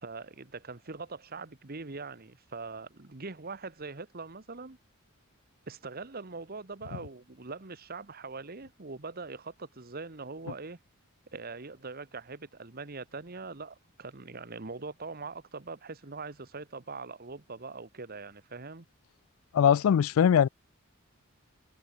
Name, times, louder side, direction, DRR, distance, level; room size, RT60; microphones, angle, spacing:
voice 1, 0.0-4.8 5.7-10.8 11.3-18.8, right 4 dB, 45° right, 1.3 m, -42 dB
voice 2, 19.5-20.5, left 8 dB, 80° left, 0.3 m, -21 dB
head